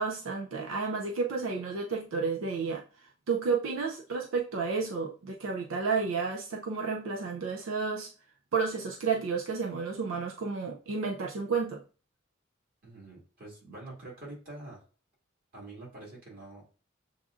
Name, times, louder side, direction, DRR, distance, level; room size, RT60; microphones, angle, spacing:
voice 1, 0.0-8.1 8.5-11.8, right 5 dB, 75° right, 0.4 m, -31 dB
voice 2, 12.8-14.8 15.5-16.6, right 2 dB, 45° right, 2.3 m, -46 dB
7.1 x 2.5 x 2.4 m
head